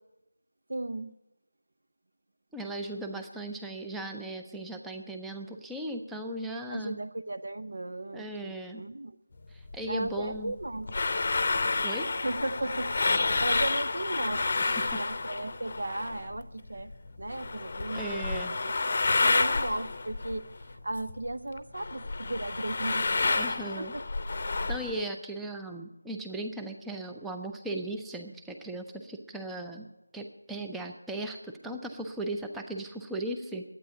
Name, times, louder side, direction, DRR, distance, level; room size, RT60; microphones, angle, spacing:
voice 1, 0.7-1.1 3.1-3.2 6.7-9.2 9.9-11.1 12.2-16.9 17.2-23.4 23.8-24.0, right 2 dB, 60° right, 10 dB, 0.8 m, -36 dB
voice 2, 2.5-7.0 8.1-8.8 9.5-10.5 11.8-12.1 14.6-15.0 17.9-18.6 23.4-23.9 24.7-29.9 30.1-33.6, right 1 dB, 5° right, 3 dB, 0.6 m, -37 dB
sound 1, 9.7-16.4 16.7-21.3 21.6-25.0, left 3 dB, 35° left, 0.7 m, -30 dB
11.5 x 9.1 x 8.3 m, 0.94 s
figure-of-eight pair, 165°, 0 cm